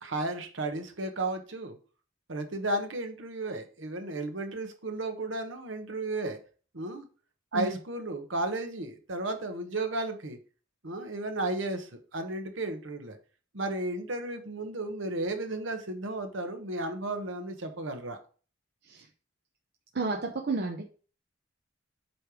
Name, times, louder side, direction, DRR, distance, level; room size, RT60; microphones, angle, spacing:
voice 1, 0.0-1.8 2.3-6.4 6.7-7.0 7.5-10.4 10.8-13.2 13.5-18.2, right 2 dB, 70° right, 6 dB, 1.1 m, -33 dB
voice 2, 19.9-20.8, right 3 dB, 55° right, 2 dB, 0.7 m, -31 dB
7.9 x 3.3 x 4.9 m, 0.38 s
head